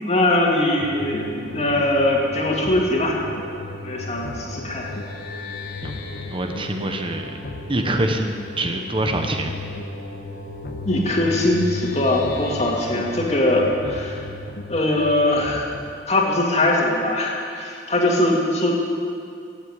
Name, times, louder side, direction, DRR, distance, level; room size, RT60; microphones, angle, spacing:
voice 1, 0.0-3.2 3.8-4.9 10.8-14.3 14.7-15.7 16.1-18.7, left 1 dB, 40° left, -1 dB, 2.4 m, -21 dB
sound 1, 0.8-16.3, left 2 dB, 90° left, 1.9 m, -35 dB
sound 2, 1.7-1.8 2.5-3.4 4.1-5.0 5.7-6.6 7.3-8.2 8.9-9.8 10.5-11.4 12.1-13.0 13.7-14.6 15.3-16.0, left 2 dB, 55° left, 1.1 m, -39 dB
voice 2, 6.3-7.3 7.7-9.5, right 1 dB, 30° right, 5 dB, 0.8 m, -25 dB
16.5 x 7.9 x 8.6 m, 2.4 s
head